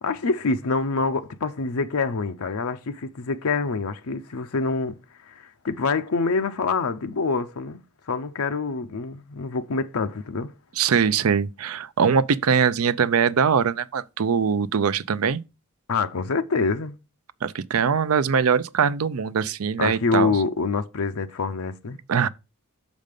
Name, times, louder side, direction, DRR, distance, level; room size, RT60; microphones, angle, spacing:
voice 1, 0.0-5.0 5.2-7.8 8.1-10.5 15.9-16.9 19.8-22.0, left 4 dB, 75° left, 0.6 m, -26 dB
voice 2, 10.8-15.4 17.4-20.3 22.1-22.3, right 6 dB, 75° right, 0.5 m, -22 dB
6.5 x 5.2 x 5.2 m
head